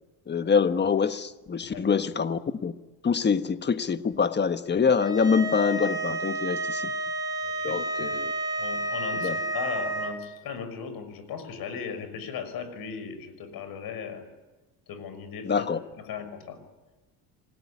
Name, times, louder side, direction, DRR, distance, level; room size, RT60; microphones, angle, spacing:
voice 1, 0.3-2.7 3.0-6.9 7.6-8.3 9.2-9.4 15.4-15.8, left 6 dB, 25° left, 10 dB, 1.4 m, -25 dB
voice 2, 1.6-2.0 7.4-8.1 8.6-14.2 14.9-15.6 16.0-16.6, left 7 dB, 70° left, 10 dB, 6.1 m, -37 dB
sound 1, 5.0-10.1, right 2 dB, 10° right, 5.1 m, -30 dB
27.5 x 19.0 x 9.9 m, 1.1 s
cardioid pair, 105°, 38 cm